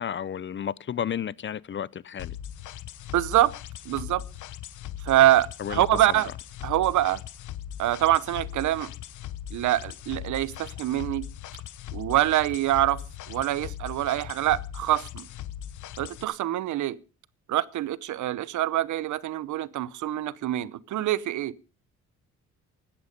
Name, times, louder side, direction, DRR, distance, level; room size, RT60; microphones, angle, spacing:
voice 1, 0.0-2.4 5.6-6.2, left 8 dB, 40° left, 0.6 m, -32 dB
sound 1, 2.2-16.2, left 11 dB, 80° left, 1.0 m, -39 dB
voice 2, 3.1-3.5 3.9-4.2 5.0-6.3 6.6-7.2 7.8-8.9 9.5-11.2 11.9-13.0 13.3-15.3 16.0-17.0 17.5-21.5, right 13 dB, 75° right, 0.9 m, -25 dB
16.5 x 12.0 x 5.3 m
cardioid pair, 90°, 30 cm